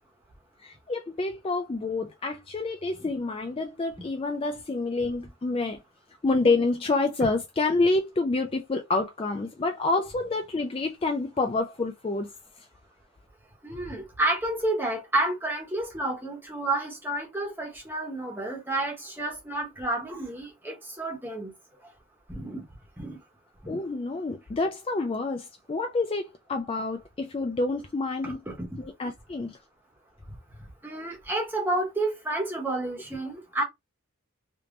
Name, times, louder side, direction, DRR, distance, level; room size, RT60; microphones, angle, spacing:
voice 1, 0.6-5.8 6.2-12.3 23.7-28.4 28.8-29.6, left 3 dB, 25° left, 0.3 m, -28 dB
voice 2, 13.6-21.5 22.3-22.6 23.0-23.2 23.6-23.8 28.2-28.9 30.8-33.6, right 2 dB, 10° right, 1.0 m, -30 dB
3.4 x 2.9 x 2.6 m
head